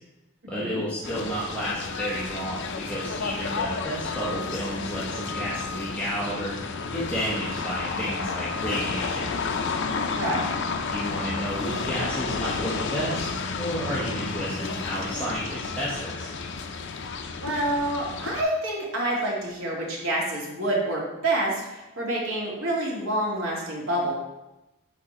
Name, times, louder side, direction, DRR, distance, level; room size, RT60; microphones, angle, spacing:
voice 1, 0.5-6.5 6.9-9.3 10.8-16.3, equal, 5° left, -8 dB, 1.1 m, -31 dB
sound 1, 1.0-18.4, left 4 dB, 60° left, 0.6 m, -31 dB
voice 2, 10.1-10.5 17.4-24.1, right 1 dB, 70° right, -4 dB, 2.1 m, -27 dB
7.5 x 4.2 x 4.2 m, 0.98 s
head